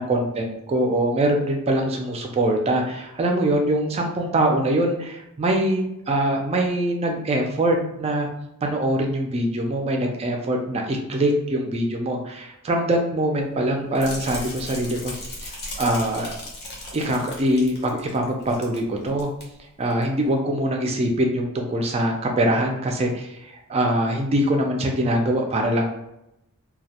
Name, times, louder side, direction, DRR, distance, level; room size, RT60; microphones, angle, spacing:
voice 1, 0.0-8.3 8.6-15.1 15.4-16.3 16.9-19.3 19.8-25.9, right 1 dB, 30° right, 2 dB, 0.3 m, -23 dB
sound 1, 13.9-18.8 19.1-19.4 19.9-20.0, left 1 dB, 50° left, 0.7 m, -36 dB
2.2 x 2.0 x 2.7 m, 0.85 s
head